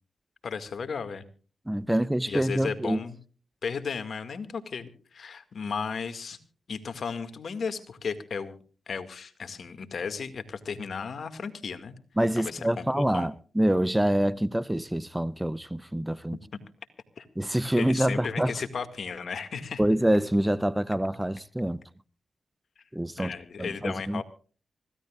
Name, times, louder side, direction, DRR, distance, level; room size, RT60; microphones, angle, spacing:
voice 1, 0.4-1.2 2.3-3.2 3.6-6.4 6.7-8.6 8.9-12.0 12.4-13.3 17.2-17.3 17.8-19.8 23.2-24.2, left 5 dB, 70° left, 2.0 m, -34 dB
voice 2, 1.7-3.0 12.2-16.4 17.4-18.5 19.8-21.8 22.9-23.3 23.6-24.2, right 1 dB, 10° right, 0.7 m, -26 dB
25.5 x 16.0 x 2.4 m
cardioid pair, 60°, 0 cm